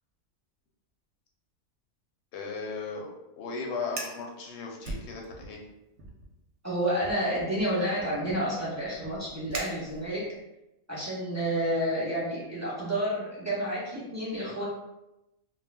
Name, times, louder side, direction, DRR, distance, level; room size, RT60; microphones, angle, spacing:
voice 1, 2.3-5.6, left 4 dB, 65° left, 0 dB, 0.7 m, -37 dB
Fire, 3.8-4.3 4.8-5.6 6.0-6.3 7.0-10.4, right 2 dB, 65° right, 0.8 m, -41 dB
voice 2, 6.6-10.2 10.9-14.6, right 1 dB, 15° right, -8 dB, 0.7 m, -30 dB
2.3 x 2.1 x 3.3 m, 0.93 s
omnidirectional pair, 1.5 m